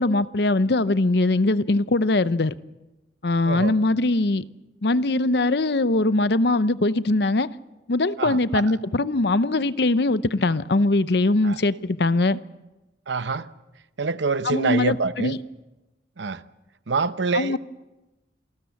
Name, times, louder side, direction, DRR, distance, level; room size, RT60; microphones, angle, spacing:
voice 1, 0.0-2.5 3.2-4.4 4.8-7.5 7.9-12.4 14.4-15.4 17.3-17.6, left 2 dB, 60° left, 0.7 m, -21 dB
voice 2, 3.4-3.8 8.2-8.6 11.4-11.6 13.1-13.5 14.0-15.4 16.2-16.4 16.9-17.6, right 4 dB, 75° right, 0.9 m, -26 dB
27.5 x 19.5 x 7.2 m
head